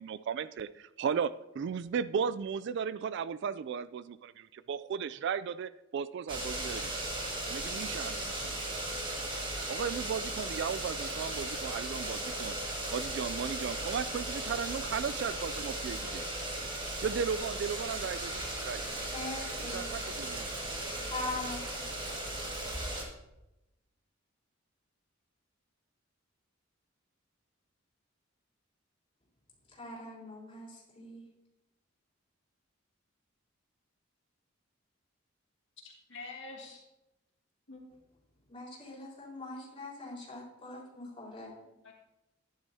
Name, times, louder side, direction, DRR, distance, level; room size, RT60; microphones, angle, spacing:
voice 1, 0.0-6.9 7.5-8.6 9.7-12.6 12.9-16.3 17.0-18.9 19.6-20.7, right 6 dB, 55° right, 15 dB, 0.3 m, -36 dB
sound 1, 6.3-23.0, right 1 dB, 25° right, 1.8 m, -37 dB
voice 2, 19.1-19.8 21.1-21.8 29.7-31.2 38.5-41.5, left 2 dB, 25° left, -5 dB, 4.4 m, -42 dB
voice 3, 35.8-36.8 37.7-37.8 41.7-41.9, left 3 dB, 65° left, -2 dB, 2.4 m, -46 dB
12.0 x 10.5 x 2.8 m, 0.91 s
head